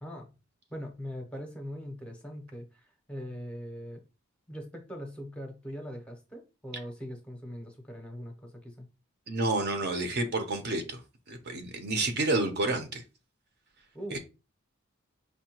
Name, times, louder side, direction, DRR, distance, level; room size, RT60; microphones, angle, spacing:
voice 1, 0.7-4.0 4.5-8.9 13.9-14.2, equal, 5° left, 0.6 m, -41 dB
voice 2, 9.3-11.0 11.3-13.0 14.1-14.2, right 2 dB, 50° right, 0.6 m, -29 dB
5.3 x 2.2 x 2.8 m
head